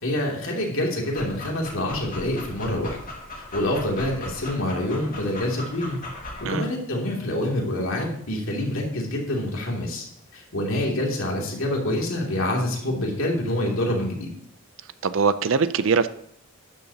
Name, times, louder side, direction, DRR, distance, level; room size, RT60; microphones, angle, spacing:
voice 1, 0.0-3.0 3.3-6.0 6.4-10.0 10.3-14.3, left 1 dB, 65° left, -1 dB, 2.8 m, -26 dB
Dog, 1.0-6.4, left 1 dB, 40° left, 2.1 m, -38 dB
voice 2, 15.0-16.1, right 5 dB, 60° right, 14 dB, 0.5 m, -21 dB
12.0 x 10.5 x 2.9 m, 0.69 s
head